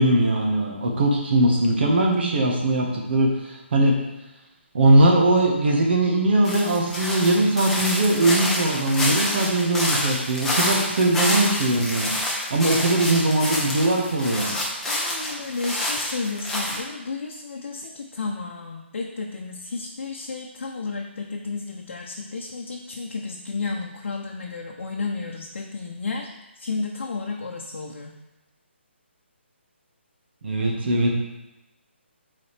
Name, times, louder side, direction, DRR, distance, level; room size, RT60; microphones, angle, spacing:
voice 1, 0.0-3.9 4.7-12.1 12.5-14.5 30.4-31.1, right 1 dB, 55° right, 0 dB, 1.5 m, -20 dB
sound 1, 6.4-16.8, left 1 dB, 5° left, 0.8 m, -27 dB
voice 2, 14.9-26.3 26.6-28.2, left 4 dB, 65° left, 0 dB, 0.8 m, -32 dB
7.0 x 4.1 x 3.4 m, 0.99 s
hypercardioid pair, 160°, 7 cm